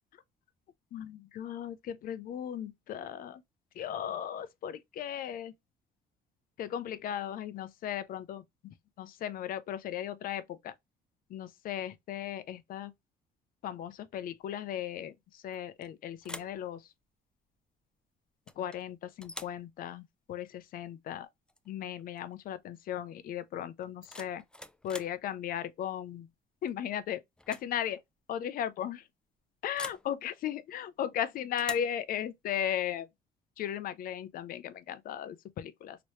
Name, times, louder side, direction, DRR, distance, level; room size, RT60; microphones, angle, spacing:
voice 1, 0.9-3.4 3.8-5.5 6.6-8.4 9.0-10.7 11.3-12.9 13.6-15.1 15.4-16.8 18.6-21.3 21.7-24.4 24.8-26.3 26.6-27.2 27.5-28.0 28.3-29.0 29.6-33.1 33.6-36.0, left 10 dB, 60° left, 0.5 m, -36 dB
sound 1, 15.5-15.9 16.2-16.6 18.5-18.8 19.2-19.6 21.5-21.7 22.0-22.3 23.8-25.2 26.7-27.0 27.4-27.7 28.0-28.1 29.8-30.1 31.6-32.0, left 1 dB, 5° left, 0.4 m, -45 dB
3.0 x 2.9 x 2.9 m
cardioid pair, 110°, 17 cm